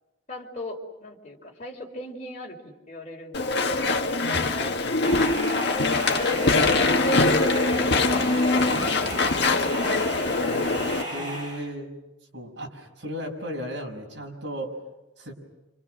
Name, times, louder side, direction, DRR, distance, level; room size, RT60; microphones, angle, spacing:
voice 1, 0.3-3.9 5.6-7.5 8.1-8.7 9.5-11.3, left 1 dB, 40° left, 0 dB, 4.5 m, -39 dB
Walk footsteps / Chatter / Squeak, 3.3-11.0, left 3 dB, 60° left, 1.7 m, -23 dB
voice 2, 4.2-4.6 7.8-8.9 9.2-9.4 11.1-11.9 12.3-14.8 15.2-15.3, equal, 65° right, 1 dB, 6.1 m, -36 dB
sound 1, 5.0-11.6, equal, 25° right, 6.8 m, -35 dB
29.5 x 27.5 x 6.5 m, 0.97 s
head